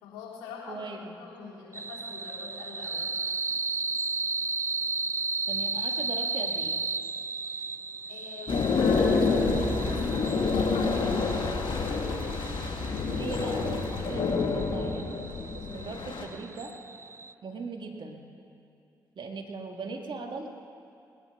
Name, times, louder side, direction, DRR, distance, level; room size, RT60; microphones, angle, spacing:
voice 1, 0.0-0.9 1.2-3.1 8.1-11.4, left 5 dB, 85° left, -6 dB, 3.7 m, -43 dB
voice 2, 0.7-1.1 5.5-6.8 13.0-15.2 15.5-16.7 17.4-18.2 19.2-20.5, right 4 dB, 55° right, 3 dB, 1.9 m, -39 dB
sound 1, 1.7-17.3, right 4 dB, 30° right, 0.4 m, -35 dB
sound 2, 8.5-16.3, left 4 dB, 60° left, 1.9 m, -27 dB
20.0 x 10.0 x 6.1 m, 2.6 s
hypercardioid pair, 45°, 9 cm